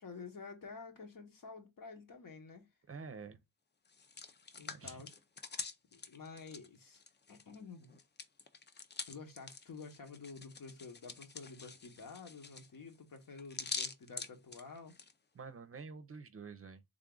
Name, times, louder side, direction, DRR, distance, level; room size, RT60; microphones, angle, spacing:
voice 1, 0.0-2.7 4.6-5.1 5.9-7.0 7.3-8.0 9.1-14.9, left 4 dB, 70° left, 1.2 m, -50 dB
voice 2, 2.9-3.4 4.7-5.0 15.3-16.8, right 5 dB, 40° right, 0.5 m, -48 dB
Hands, 3.9-7.6 7.8-15.1, left 5 dB, 30° left, 0.4 m, -46 dB
3.7 x 2.3 x 3.7 m
wide cardioid pair, 115°, 35 cm